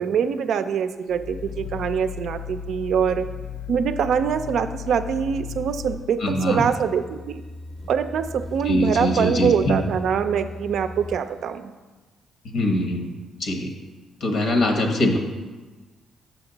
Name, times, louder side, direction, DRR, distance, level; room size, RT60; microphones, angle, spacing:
voice 1, 0.0-3.3 3.7-7.4 7.9-11.7, right 7 dB, 70° right, 9 dB, 0.4 m, -24 dB
Growling, 1.1-6.0, left 8 dB, 85° left, 0.5 m, -35 dB
voice 2, 6.2-6.7 8.6-9.8 12.4-13.1 13.4-13.7 14.2-15.2, left 1 dB, 65° left, 4 dB, 0.9 m, -22 dB
sound 1, 6.5-11.6, left 1 dB, 5° left, 0.6 m, -37 dB
6.1 x 5.8 x 3.9 m, 1.3 s
cardioid pair, 90°, 0 cm